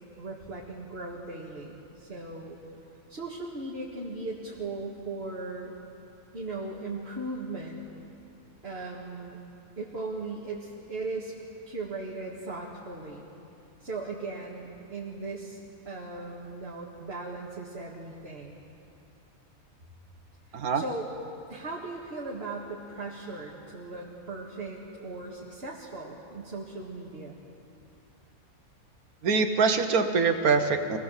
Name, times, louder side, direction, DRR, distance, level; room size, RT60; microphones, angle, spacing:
voice 1, 0.2-2.6 3.1-5.7 6.3-7.9 8.6-9.4 9.8-11.3 11.7-13.3 13.8-15.6 15.8-18.6 20.7-21.1 21.5-27.4, right 3 dB, 45° right, -3 dB, 2.2 m, -38 dB
voice 2, 29.2-31.0, right 5 dB, 75° right, 6 dB, 1.7 m, -24 dB
25.5 x 19.0 x 7.4 m, 2.7 s
omnidirectional pair, 1.5 m